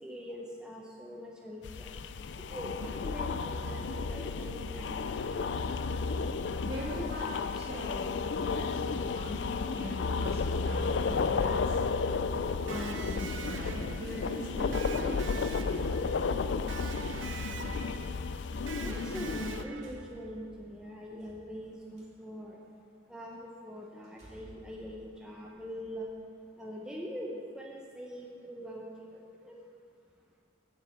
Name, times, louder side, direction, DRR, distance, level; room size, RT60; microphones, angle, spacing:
voice 1, 0.0-1.9 2.4-5.5 18.8-22.6 23.1-26.1 26.6-29.6, equal, 5° right, -3 dB, 0.7 m, -43 dB
sound 1, 1.6-19.6, left 4 dB, 75° left, 0.4 m, -33 dB
voice 2, 6.6-11.8 12.5-15.7, equal, 60° right, -4 dB, 2.1 m, -41 dB
Electric guitar, 12.7-20.4, right 6 dB, 85° right, 0.4 m, -45 dB
sound 2, 14.1-15.0 16.0-16.2 18.0-18.1 19.0-19.2 19.5-22.1 22.7-22.8 23.3-23.4 24.0-25.8, equal, 40° right, 2.9 m, -55 dB
8.2 x 6.0 x 8.0 m, 2.4 s
head